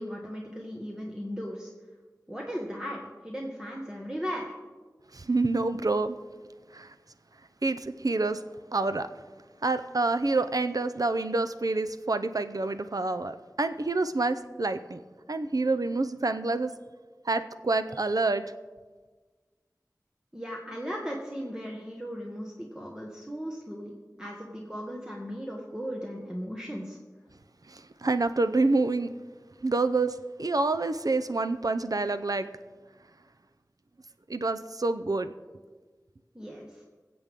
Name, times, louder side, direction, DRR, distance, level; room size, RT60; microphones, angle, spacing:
voice 1, 0.0-1.7 2.3-4.5 20.3-27.0 36.3-36.8, equal, 10° right, -2 dB, 1.5 m, -37 dB
voice 2, 5.1-6.2 6.7-6.9 7.6-8.4 8.7-9.1 9.6-15.0 15.3-16.7 17.2-18.4 27.7-29.1 29.6-32.5 34.3-35.3, right 3 dB, 65° right, 10 dB, 0.6 m, -27 dB
22.5 x 7.8 x 3.7 m, 1.4 s
wide cardioid pair, 50°, 7 cm